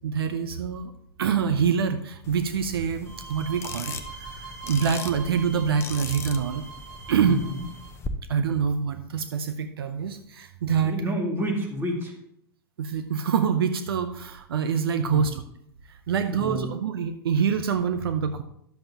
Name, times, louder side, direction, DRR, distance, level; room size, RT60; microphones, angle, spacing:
voice 1, 0.0-0.9 1.2-6.6 7.1-7.4 8.3-11.0 12.8-15.4 16.1-18.4, right 7 dB, 70° right, 9 dB, 0.6 m, -25 dB
sound 1, 2.2-8.1, left 5 dB, 20° left, 0.8 m, -40 dB
sound 2, 3.0-8.0, right 5 dB, 50° right, 2.8 m, -43 dB
voice 2, 7.2-7.6 10.8-12.1 15.0-15.3 16.3-16.7, equal, 15° right, 0 dB, 2.2 m, -29 dB
11.5 x 7.6 x 2.9 m, 0.74 s
hypercardioid pair, 105°, 13 cm